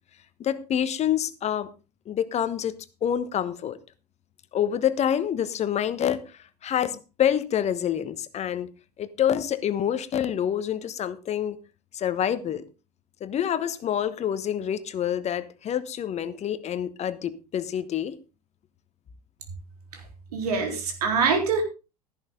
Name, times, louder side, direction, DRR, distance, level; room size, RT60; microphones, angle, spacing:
voice 1, 0.4-1.7 2.1-3.8 4.5-8.7 9.0-11.6 11.9-12.6 13.2-18.1, left 9 dB, 35° left, 15 dB, 1.2 m, -27 dB
voice 2, 20.3-21.6, right 5 dB, 70° right, 4 dB, 3.8 m, -24 dB
14.0 x 11.0 x 3.8 m, 0.30 s
figure-of-eight pair, 80°, 20 cm